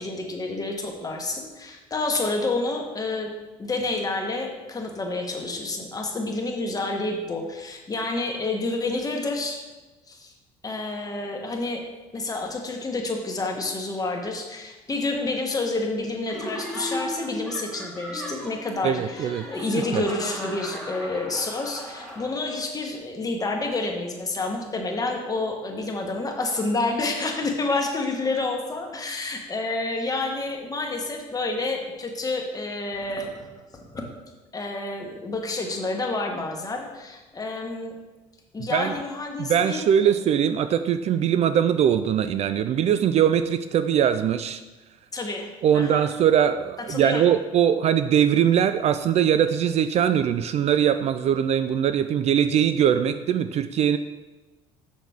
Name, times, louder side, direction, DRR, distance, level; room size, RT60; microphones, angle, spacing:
voice 1, 0.0-3.3 3.6-9.6 10.1-10.3 10.6-11.8 12.1-33.5 33.7-34.0 34.5-37.9 38.5-40.1 45.1-46.0 46.9-47.3, left 2 dB, 25° left, 1 dB, 1.3 m, -29 dB
Laughter, 16.3-22.6, equal, ahead, 1.7 m, -36 dB
voice 2, 18.8-19.4 19.9-20.0 38.6-39.0 39.4-44.6 45.6-54.0, right 9 dB, 45° right, 11 dB, 0.4 m, -21 dB
6.4 x 5.9 x 3.5 m, 1.2 s
supercardioid pair, 85°, 15 cm